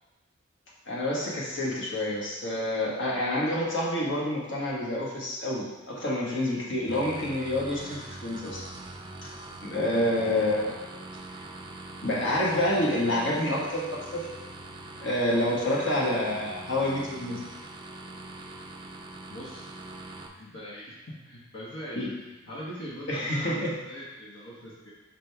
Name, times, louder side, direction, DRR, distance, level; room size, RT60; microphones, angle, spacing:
voice 1, 0.9-8.6 9.2-9.3 9.6-10.8 12.0-14.3 15.0-17.4 22.0-22.1 23.1-23.7, left 1 dB, 60° left, -4 dB, 1.4 m, -28 dB
sound 1, 6.9-20.3, right 2 dB, 25° right, 0.4 m, -43 dB
voice 2, 9.9-10.2 19.3-19.6 20.4-24.9, equal, 80° left, -6 dB, 1.2 m, -41 dB
5.9 x 5.1 x 3.4 m, 1.1 s
head